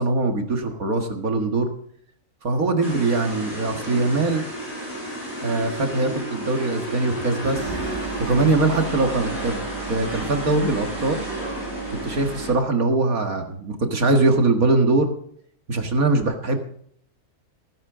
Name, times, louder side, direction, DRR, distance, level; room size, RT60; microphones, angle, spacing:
voice 1, 0.0-1.7 2.4-4.4 5.4-7.8 8.2-9.6 9.9-11.2 12.0-15.1 15.7-16.6, right 3 dB, 65° right, 4 dB, 2.1 m, -22 dB
sound 1, 2.8-12.5, equal, 30° left, 8.0 m, -32 dB
sound 2, 7.6-12.6, right 6 dB, 85° right, 3.7 m, -35 dB
19.0 x 11.0 x 3.7 m, 0.63 s
omnidirectional pair, 1.6 m